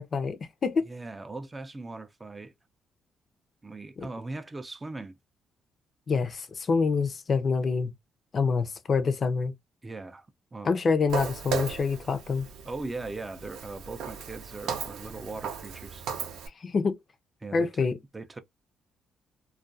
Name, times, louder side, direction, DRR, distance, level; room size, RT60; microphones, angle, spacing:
voice 1, 0.0-0.9 6.1-7.9 8.3-9.5 10.6-12.4 16.6-17.0 17.5-18.0, left 4 dB, 45° left, 0.5 m, -26 dB
voice 2, 0.9-2.5 3.6-5.1 9.8-10.7 12.7-16.1 17.4-17.9 18.1-18.4, right 3 dB, 20° right, 0.4 m, -39 dB
Walk footsteps, 11.1-16.5, right 6 dB, 85° right, 0.5 m, -36 dB
2.3 x 2.2 x 2.5 m
cardioid pair, 90°, 0 cm